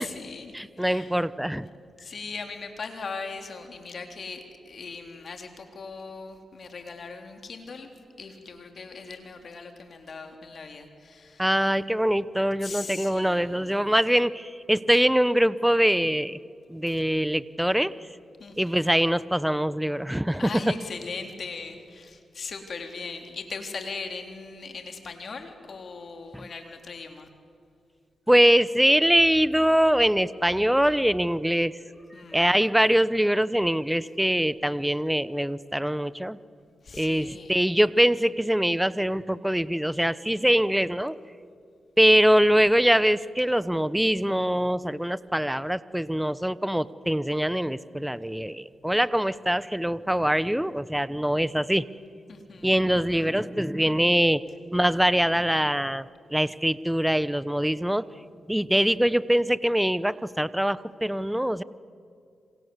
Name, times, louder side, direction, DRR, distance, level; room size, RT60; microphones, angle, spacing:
voice 1, 0.0-1.1 2.0-7.9 8.2-11.4 12.6-13.8 18.4-18.8 20.4-27.3 32.1-32.5 36.8-37.6 52.3-52.7, left 4 dB, 60° left, 5 dB, 3.8 m, -39 dB
voice 2, 0.5-1.7 11.4-16.4 16.7-18.0 18.6-20.7 26.3-26.5 28.3-31.7 32.3-36.4 36.9-41.2 42.0-51.9 52.6-54.4 54.7-58.0 58.5-61.6, equal, 5° right, 17 dB, 0.9 m, -23 dB
27.5 x 26.5 x 8.1 m, 2.3 s
supercardioid pair, 50°, 0 cm